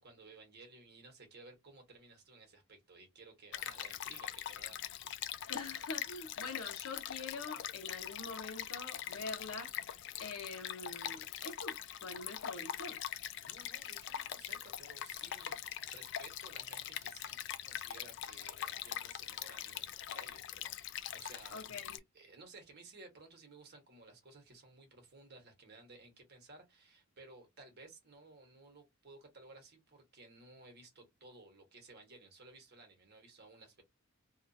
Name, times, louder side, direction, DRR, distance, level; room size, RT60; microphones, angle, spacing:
voice 1, 0.0-4.8 13.4-17.4 17.7-21.6 22.1-33.8, right 3 dB, 50° right, 1.1 m, -57 dB
Stream, 3.5-22.0, left 11 dB, 55° left, 0.3 m, -43 dB
voice 2, 5.5-9.7 10.2-13.0 21.5-22.0, left 3 dB, 90° left, 0.9 m, -45 dB
2.8 x 2.4 x 2.6 m
head